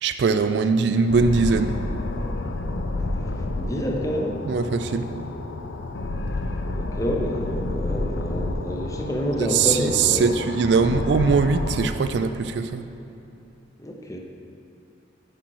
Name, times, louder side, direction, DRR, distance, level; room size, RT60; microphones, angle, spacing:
voice 1, 0.0-1.8 4.4-5.1 9.4-12.8, right 5 dB, 60° right, 9 dB, 0.3 m, -21 dB
sound 1, 1.1-11.9, left 2 dB, 60° left, 0.5 m, -29 dB
voice 2, 3.5-4.4 6.8-10.3 13.8-14.2, equal, 15° left, 0 dB, 0.6 m, -28 dB
7.7 x 5.9 x 4.7 m, 2.7 s
head